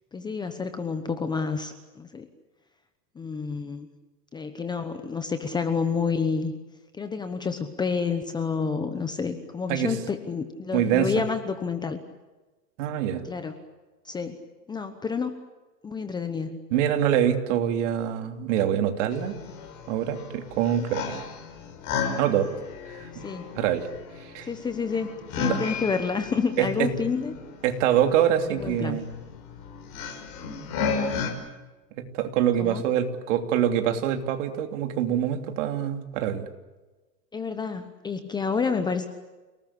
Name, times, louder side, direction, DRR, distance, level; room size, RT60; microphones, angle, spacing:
voice 1, 0.1-2.3 3.1-3.9 4.3-6.5 7.0-12.0 13.2-13.6 14.0-14.4 14.7-15.3 15.8-16.6 23.1-23.5 24.4-27.4 28.5-29.0 32.6-32.8 37.3-39.1, left 5 dB, 10° left, 8 dB, 1.0 m, -29 dB
voice 2, 10.7-11.1 12.8-13.2 16.7-19.4 19.9-21.0 22.2-22.5 22.9-23.2 23.5-23.9 24.2-24.5 25.5-25.6 26.6-26.9 27.6-29.1 32.0-36.5, right 10 dB, 50° right, 5 dB, 3.0 m, -25 dB
sound 1, 19.1-31.3, left 5 dB, 40° left, 5.8 m, -34 dB
29.5 x 19.0 x 8.6 m, 1.2 s
hypercardioid pair, 145°, 49 cm